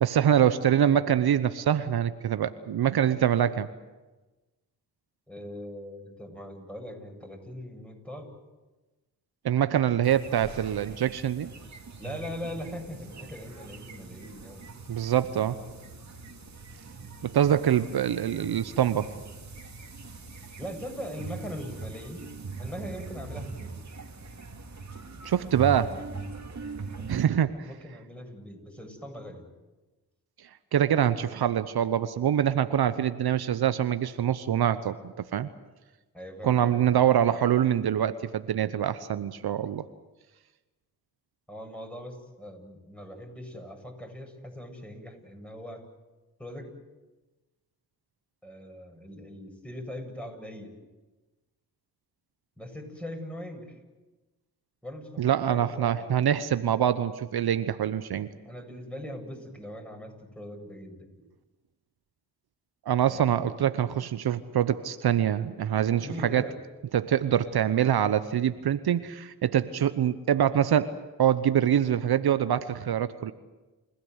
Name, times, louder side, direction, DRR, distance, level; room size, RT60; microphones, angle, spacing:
voice 1, 0.0-3.7 9.4-11.5 14.9-15.6 17.2-19.1 25.2-25.9 27.1-27.5 30.7-35.5 36.4-39.8 55.2-58.3 62.9-66.5 66.9-70.9 71.2-73.3, right 10 dB, 65° right, 13 dB, 1.0 m, -25 dB
voice 2, 5.3-8.3 12.0-14.7 20.6-22.3 22.6-23.7 26.9-27.3 27.6-29.4 36.1-36.7 41.5-45.8 46.4-46.7 48.4-50.7 52.6-53.8 54.8-56.0 58.2-61.1 63.1-63.4 66.0-66.6, equal, 5° left, 2 dB, 7.9 m, -41 dB
sound 1, 10.0-27.2, right 4 dB, 45° right, 2.7 m, -41 dB
30.0 x 16.0 x 8.1 m, 1.1 s
supercardioid pair, 45°, 40 cm